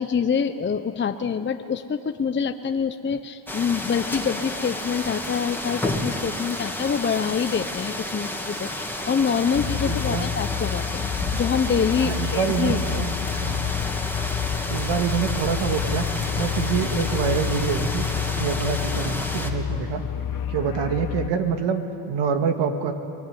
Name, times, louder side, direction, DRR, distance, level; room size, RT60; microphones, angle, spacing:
voice 1, 0.0-13.0, left 6 dB, 25° left, 8 dB, 0.8 m, -26 dB
sound 1, 3.5-19.5, left 1 dB, 5° left, 2.3 m, -31 dB
sound 2, 9.5-21.3, left 9 dB, 50° left, 1.2 m, -29 dB
voice 2, 9.5-10.3 12.0-13.1 13.4-13.7 14.7-18.0 18.3-20.0 20.5-21.8 22.1-22.9, right 7 dB, 70° right, 6 dB, 2.1 m, -26 dB
24.5 x 18.5 x 9.5 m, 2.8 s
supercardioid pair, 85°, 44 cm